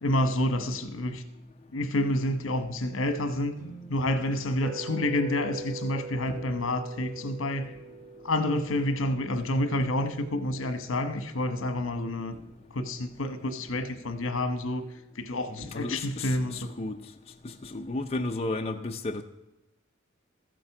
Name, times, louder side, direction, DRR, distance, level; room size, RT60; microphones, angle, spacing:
voice 1, 0.0-1.2 1.7-3.6 3.9-7.7 8.2-12.4 12.7-14.9 15.1-16.7, left 1 dB, 75° left, 1.2 m, -29 dB
sound 1, 3.5-7.6, right 5 dB, 15° right, 4.4 m, -54 dB
sound 2, 4.6-10.7, right 3 dB, 50° right, 0.7 m, -43 dB
sound 3, 6.3-6.7 7.6-8.0 9.0-9.5 10.6-10.8 12.3-12.8 13.7-14.2 15.6-16.3, equal, 70° right, 2.0 m, -50 dB
voice 2, 15.5-17.1 17.4-19.2, left 2 dB, 30° left, 0.5 m, -33 dB
14.0 x 7.7 x 5.9 m
head